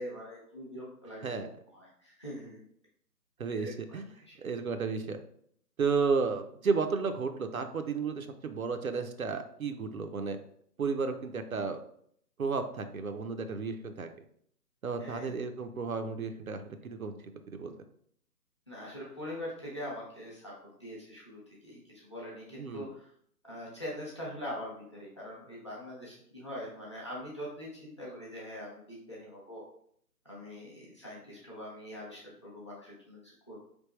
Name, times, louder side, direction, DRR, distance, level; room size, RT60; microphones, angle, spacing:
voice 1, 0.0-1.4 1.7-2.6 3.5-3.7 4.3-4.4 15.0-15.3 18.7-20.5 20.8-23.1 23.5-29.6 30.2-33.6, equal, 20° left, -6 dB, 0.7 m, -43 dB
voice 2, 3.4-5.2 5.8-10.4 10.8-11.8 12.4-14.1 14.8-17.1 17.5-17.7 22.5-22.9, right 5 dB, 60° right, 7 dB, 0.5 m, -33 dB
4.2 x 3.4 x 3.1 m, 0.66 s
figure-of-eight pair, 150°, 48 cm